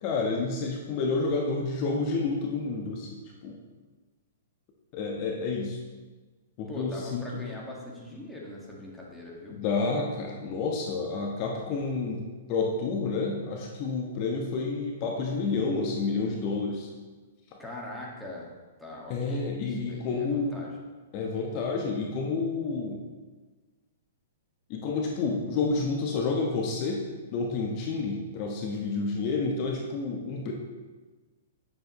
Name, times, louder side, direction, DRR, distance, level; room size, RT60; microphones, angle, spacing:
voice 1, 0.0-3.6 4.9-5.8 6.6-7.3 9.5-12.2 12.5-16.9 17.5-17.6 19.1-20.6 21.1-23.0 24.7-27.0 27.3-30.5, left 4 dB, 40° left, 0 dB, 1.1 m, -29 dB
voice 2, 6.7-9.6 17.6-18.5 18.8-20.7, left 1 dB, ahead, -5 dB, 1.8 m, -41 dB
8.9 x 7.3 x 3.1 m, 1.3 s
hypercardioid pair, 120°, 0 cm